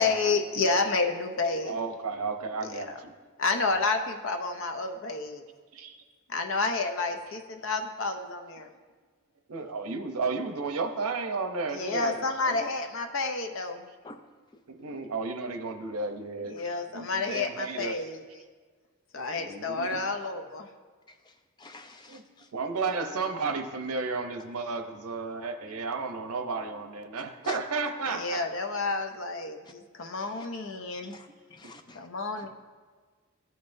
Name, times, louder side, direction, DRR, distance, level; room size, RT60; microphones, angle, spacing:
voice 1, 0.0-1.7 2.6-3.0 3.4-5.4 6.3-8.7 11.7-13.8 16.4-18.2 19.1-20.7 28.1-31.1 31.9-32.5, left 3 dB, 60° left, 5 dB, 0.7 m, -30 dB
voice 2, 1.7-3.1 5.7-6.0 9.5-12.6 14.7-16.6 16.9-18.0 19.4-20.0 22.1-22.2 22.5-28.5, right 4 dB, 90° right, 6 dB, 0.7 m, -33 dB
voice 3, 21.6-22.5 27.4-27.6 30.2-30.5 31.0-32.0, left 3 dB, 20° left, 7 dB, 0.4 m, -44 dB
14.0 x 5.5 x 2.6 m, 1.5 s
head